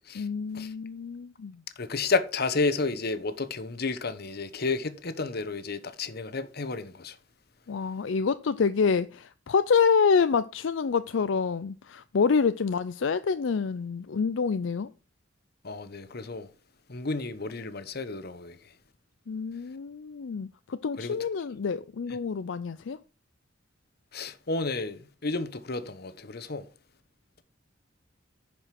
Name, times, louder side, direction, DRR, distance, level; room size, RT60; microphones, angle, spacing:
voice 1, 0.2-1.6 7.7-14.9 19.3-23.0, left 5 dB, 75° left, 0.5 m, -27 dB
voice 2, 1.8-7.2 15.6-16.5 16.9-18.6 21.0-21.2 24.1-26.7, left 3 dB, 55° left, 1.0 m, -31 dB
11.0 x 5.1 x 5.8 m
head